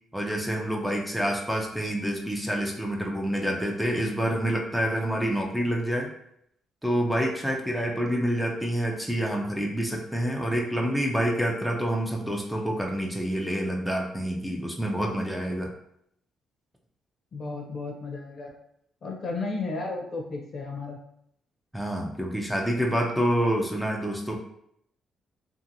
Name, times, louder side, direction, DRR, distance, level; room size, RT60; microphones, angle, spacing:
voice 1, 0.1-6.1 6.8-15.7 21.7-24.4, equal, 5° right, 0 dB, 0.4 m, -27 dB
voice 2, 17.3-18.5 19.0-21.0, left 3 dB, 50° left, 1 dB, 0.6 m, -33 dB
2.7 x 2.5 x 2.6 m, 0.73 s
cardioid pair, 90°, 0 cm